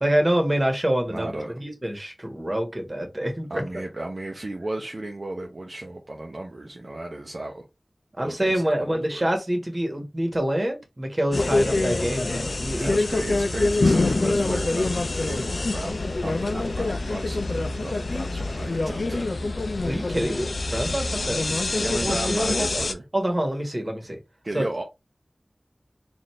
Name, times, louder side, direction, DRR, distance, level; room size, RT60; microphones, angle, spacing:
voice 1, 0.0-3.6 8.2-12.9 19.8-21.4 22.0-22.8 23.1-24.2 24.5-24.7, right 1 dB, 35° right, 1.3 m, -26 dB
voice 2, 1.1-1.5 3.5-7.7 8.2-9.3 12.7-17.5 17.8-19.3 21.8-23.0 24.4-24.8, right 2 dB, 60° right, 0.6 m, -34 dB
sound 1, 11.3-22.9, left 2 dB, 75° left, 0.4 m, -25 dB
4.1 x 2.5 x 3.1 m
wide cardioid pair, 55°, 0 cm